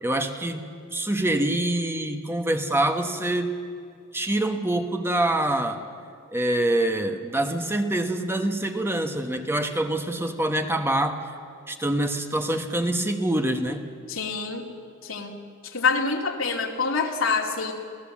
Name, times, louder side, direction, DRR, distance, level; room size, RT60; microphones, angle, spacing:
voice 1, 0.0-3.5 4.1-5.8 6.3-11.2 11.7-13.9, right 1 dB, 10° right, 6 dB, 1.2 m, -25 dB
voice 2, 14.1-14.7 15.0-15.4 15.6-17.7, left 4 dB, 70° left, 2 dB, 2.6 m, -26 dB
27.0 x 17.0 x 7.4 m, 2.4 s
head